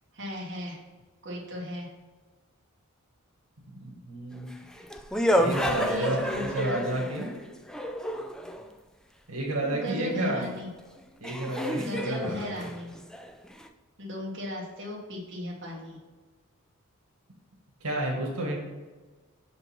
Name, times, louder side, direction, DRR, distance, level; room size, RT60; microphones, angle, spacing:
voice 1, 0.1-0.8 1.2-1.9 5.5-6.8 9.6-10.7 11.7-12.9 14.0-16.0, left 1 dB, 55° right, -4 dB, 1.7 m, -36 dB
voice 2, 3.8-4.5 5.4-7.3 9.3-10.5 11.2-12.7 17.8-18.6, right 1 dB, 90° right, -1 dB, 1.7 m, -31 dB
sound 1, 4.4-8.7 10.6-10.7 11.2-13.7, equal, 5° left, 0.3 m, -30 dB
6.0 x 5.2 x 4.3 m, 1.3 s
head